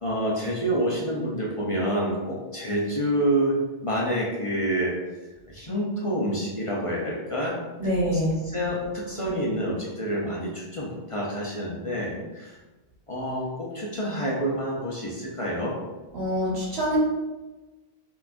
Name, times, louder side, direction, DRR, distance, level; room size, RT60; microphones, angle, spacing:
voice 1, 0.0-5.0 5.5-7.9 8.4-12.6 13.1-15.8, equal, 35° left, -4 dB, 0.7 m, -28 dB
voice 2, 7.8-8.4 16.1-17.0, equal, 80° right, -5 dB, 1.7 m, -25 dB
5.8 x 2.9 x 2.6 m, 1.1 s
omnidirectional pair, 1.1 m